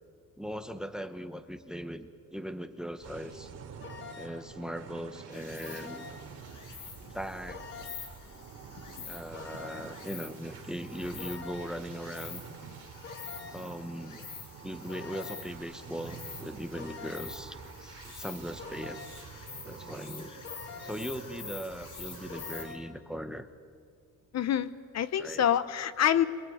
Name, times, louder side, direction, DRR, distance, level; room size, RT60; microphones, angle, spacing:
voice 1, 0.4-3.5 4.1-6.1 7.1-7.6 9.1-12.4 13.5-14.3 14.6-19.0 19.6-20.4 20.8-23.5 25.2-25.4, equal, ahead, 10 dB, 0.9 m, -39 dB
sound 1, 3.0-22.7, right 6 dB, 50° right, 2.9 m, -47 dB
sound 2, 3.8-4.5 5.6-6.4 7.5-8.2 9.3-10.1 11.2-11.9 13.0-13.8 14.9-15.6 16.7-17.5 18.6-19.3 20.4-21.2 22.3-23.0, left 6 dB, 35° left, 1.7 m, -46 dB
Insect, 5.3-22.6, left 6 dB, 70° left, 5.1 m, -47 dB
voice 2, 24.3-26.3, left 10 dB, 50° left, 14 dB, 0.8 m, -27 dB
26.0 x 23.5 x 9.4 m, 2.2 s
cardioid pair, 175°, 33 cm